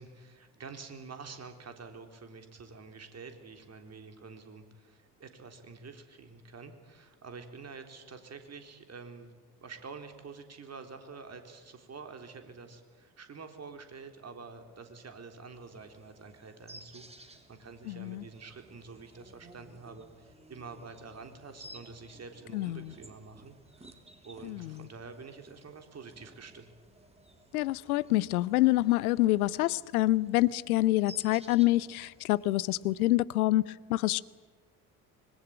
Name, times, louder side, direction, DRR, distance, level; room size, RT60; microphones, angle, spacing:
voice 1, 0.0-9.3 9.6-24.0 24.2-26.7, right 4 dB, 35° right, 3.8 m, -48 dB
sound 1, 15.5-33.1, right 1 dB, 15° right, 3.1 m, -56 dB
voice 2, 17.9-18.2 22.5-22.9 24.4-24.9 27.5-34.2, left 17 dB, 75° left, 0.8 m, -27 dB
25.5 x 21.0 x 8.9 m
figure-of-eight pair, 55°, 44 cm